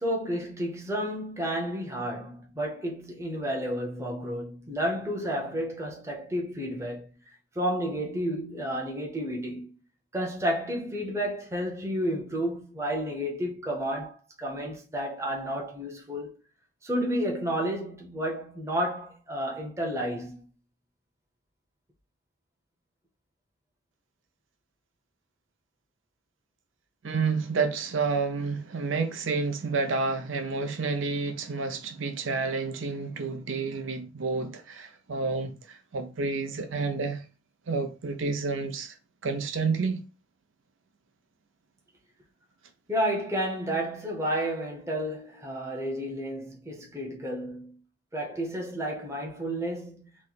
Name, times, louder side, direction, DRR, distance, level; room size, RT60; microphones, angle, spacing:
voice 1, 0.0-7.1 7.5-9.7 10.1-16.4 16.8-20.4 42.9-47.8 48.1-50.1, equal, 15° right, 0.7 m, -31 dB
voice 2, 27.0-37.2 37.7-39.0 39.2-40.0, right 4 dB, 90° right, 0.6 m, -29 dB
3.0 x 2.1 x 3.9 m
head